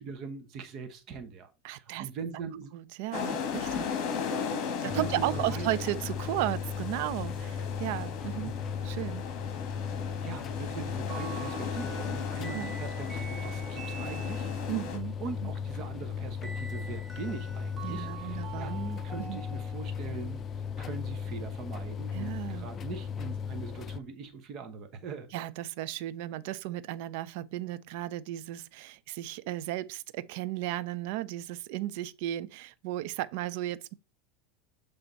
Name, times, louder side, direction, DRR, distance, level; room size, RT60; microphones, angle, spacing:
voice 1, 0.0-2.7 4.8-5.7 8.4-8.7 10.2-14.5 15.2-25.3, right 5 dB, 40° right, 1.0 m, -41 dB
voice 2, 1.6-2.1 2.7-3.9 4.8-8.6 8.8-9.3 12.5-12.7 14.7-15.5 17.8-18.7 19.2-19.4 22.1-22.7 25.3-33.9, right 15 dB, 60° right, 0.4 m, -35 dB
sound 1, 3.1-15.0, left 6 dB, 45° left, 1.6 m, -37 dB
sound 2, 4.9-24.0, left 6 dB, 25° left, 0.4 m, -36 dB
sound 3, 11.1-14.8 16.4-20.2, right 5 dB, 10° right, 1.3 m, -46 dB
7.6 x 3.3 x 4.0 m
supercardioid pair, 150°, 0 cm